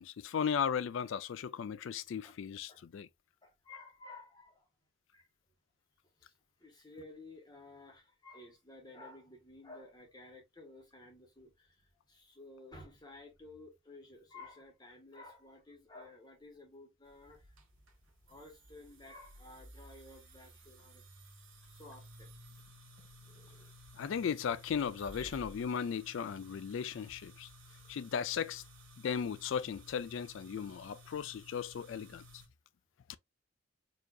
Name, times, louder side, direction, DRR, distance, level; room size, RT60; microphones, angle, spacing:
voice 1, 0.0-3.1 23.9-27.5 27.9-28.6 29.0-32.2 33.1-33.2, left 7 dB, 70° left, 0.3 m, -36 dB
voice 2, 3.4-4.7 5.1-5.3 6.2-17.8 18.3-21.0 21.7-22.4 25.2-25.3 27.6-28.0, left 2 dB, 20° left, 1.2 m, -54 dB
sound 1, 17.1-32.5, equal, 75° right, 1.6 m, -56 dB
4.6 x 2.7 x 2.3 m
head